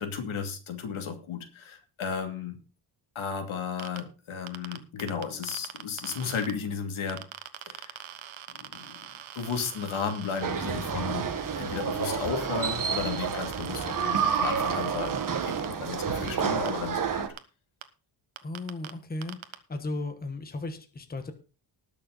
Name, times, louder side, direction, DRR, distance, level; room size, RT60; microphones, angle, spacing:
voice 1, 0.0-2.6 3.1-7.2 7.7-8.0 8.5-11.3 11.6-17.3, left 6 dB, 80° left, 5 dB, 2.7 m, -34 dB
sound 1, 3.8-4.0 4.5-6.5 7.1-15.7 16.3-16.7 17.4-17.5 17.8-17.9 18.4-18.9 19.2-19.5, right 11 dB, 75° right, 1.2 m, -43 dB
sound 2, 10.4-17.3, right 6 dB, 40° right, 1.5 m, -29 dB
voice 2, 18.4-21.3, left 2 dB, 20° left, 7 dB, 1.3 m, -36 dB
19.5 x 6.7 x 4.1 m, 0.34 s
wide cardioid pair, 165°, 47 cm